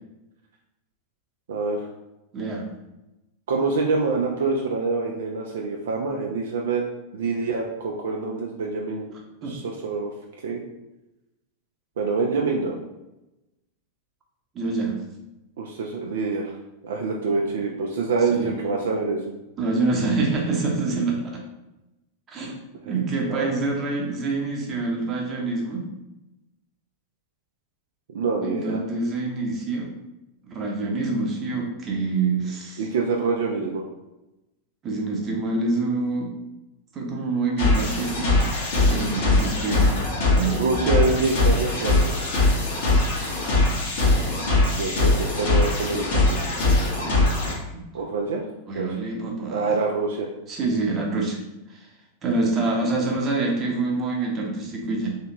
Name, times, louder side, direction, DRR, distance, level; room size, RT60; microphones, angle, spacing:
voice 1, 1.5-1.9 3.5-6.8 7.1-9.1 9.4-10.1 10.4-10.6 12.0-12.8 15.6-16.6 16.8-19.2 22.8-22.9 23.3-23.6 28.1-28.8 32.8-33.8 40.5-42.2 44.7-46.4 47.9-48.4 48.7-48.9 49.5-50.3, right 4 dB, 60° right, 0 dB, 0.4 m, -26 dB
voice 2, 2.3-2.6 9.4-9.5 14.5-15.0 18.3-18.5 19.6-21.4 22.3-22.5 22.8-25.8 28.4-29.9 30.5-32.8 34.8-36.3 36.9-38.4 38.9-40.0 40.3-40.6 47.7-47.8 48.7-49.7 50.5-51.4 52.2-55.2, right 3 dB, 25° right, -1 dB, 0.8 m, -26 dB
sound 1, 37.6-47.5, left 2 dB, 50° left, 1.1 m, -21 dB
3.2 x 2.8 x 2.8 m, 0.95 s
figure-of-eight pair, 90°, 0 cm